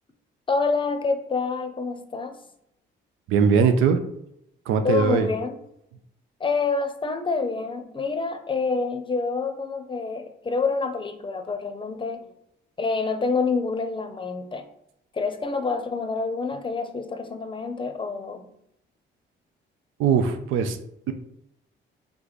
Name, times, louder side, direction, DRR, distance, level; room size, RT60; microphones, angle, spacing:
voice 1, 0.5-2.3 4.8-5.6 6.4-12.3 12.8-14.6 15.1-18.5, left 4 dB, 25° left, 8 dB, 0.6 m, -27 dB
voice 2, 3.3-4.0 4.7-5.3 20.0-20.8, right 6 dB, 90° right, 7 dB, 0.5 m, -20 dB
3.5 x 3.3 x 4.0 m, 0.78 s
cardioid pair, 90°, 20 cm